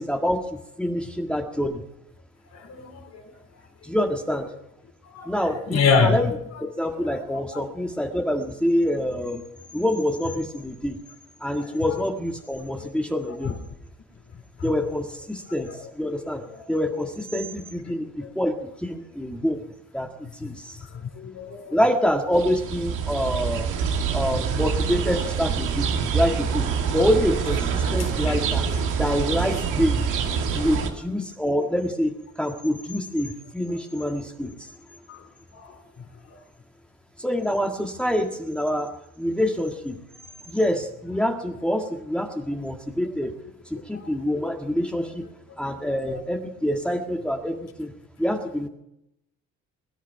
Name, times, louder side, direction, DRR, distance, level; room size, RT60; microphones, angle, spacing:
voice 1, 0.0-1.8 3.8-4.5 5.2-6.3 6.6-9.4 9.7-11.0 11.4-13.6 14.6-16.4 16.7-19.6 19.9-20.8 21.7-23.7 24.1-25.9 26.1-26.6 26.9-28.6 29.0-30.0 30.5-34.7 37.2-38.9 39.2-40.0 40.5-43.3 43.7-45.2 45.6-47.9 48.2-48.7, equal, 5° left, 2 dB, 1.7 m, -26 dB
voice 2, 2.5-3.2 5.1-6.2 7.0-7.6 11.6-11.8 12.8-12.9 13.4-13.5 14.6-14.7 15.7-15.8 16.5-16.6 18.2-18.3 20.9-21.8 28.0-28.8 35.1-35.2 35.5-35.8 36.3-36.4 43.9-44.1, left 5 dB, 55° left, 5 dB, 3.8 m, -27 dB
sound 1, 22.3-30.9, right 6 dB, 90° right, 2.1 m, -26 dB
22.0 x 10.5 x 5.8 m, 0.84 s
cardioid pair, 90°, 30 cm